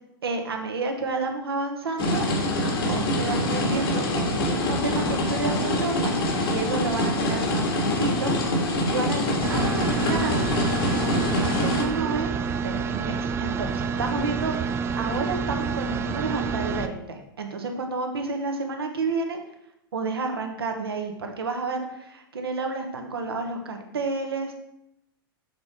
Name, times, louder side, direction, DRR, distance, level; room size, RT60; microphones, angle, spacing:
voice 1, 0.2-2.3 2.9-6.2 6.5-8.3 8.9-10.4 11.0-12.3 12.6-19.4 19.9-24.6, right 3 dB, 85° right, 4 dB, 1.1 m, -30 dB
sound 1, 2.0-11.8, left 1 dB, 70° left, 1.6 m, -25 dB
sound 2, 9.4-16.9, right 5 dB, 20° right, 0.4 m, -28 dB
6.8 x 3.6 x 4.1 m, 0.80 s
hypercardioid pair, 100°, 12 cm